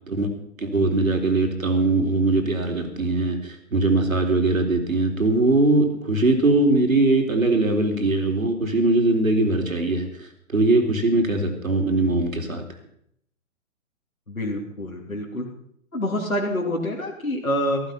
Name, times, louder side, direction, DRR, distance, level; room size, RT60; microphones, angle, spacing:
voice 1, 0.6-12.6, right 2 dB, 75° right, 5 dB, 3.8 m, -21 dB
voice 2, 14.3-15.5 15.9-17.8, equal, 90° left, -2 dB, 3.4 m, -26 dB
15.0 x 15.0 x 5.7 m, 0.69 s
figure-of-eight pair, 125°, 41 cm